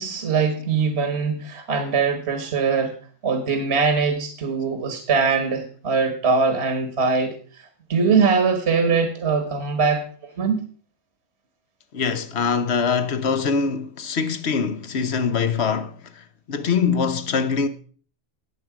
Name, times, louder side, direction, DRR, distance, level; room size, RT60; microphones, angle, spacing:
voice 1, 0.0-2.9 3.2-10.6, right 5 dB, 55° right, 1.7 m, -22 dB
voice 2, 11.9-17.7, left 5 dB, 55° left, 1.3 m, -23 dB
17.5 x 7.5 x 4.9 m
omnidirectional pair, 1.3 m